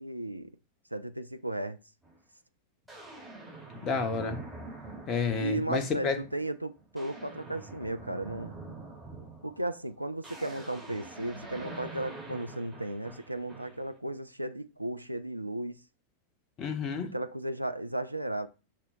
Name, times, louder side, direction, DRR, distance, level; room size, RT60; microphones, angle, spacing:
voice 1, 0.0-0.5 0.9-1.8 5.4-8.6 9.4-15.8 17.1-18.5, right 1 dB, 85° right, 0.4 m, -35 dB
sound 1, 2.0-2.2 2.9-5.8 6.2-6.5 6.8-13.9, right 2 dB, 5° right, 3.5 m, -45 dB
voice 2, 3.8-4.4 5.1-6.2 16.6-17.1, left 5 dB, 35° left, 1.2 m, -30 dB
7.2 x 6.1 x 2.7 m
figure-of-eight pair, 90°, 0 cm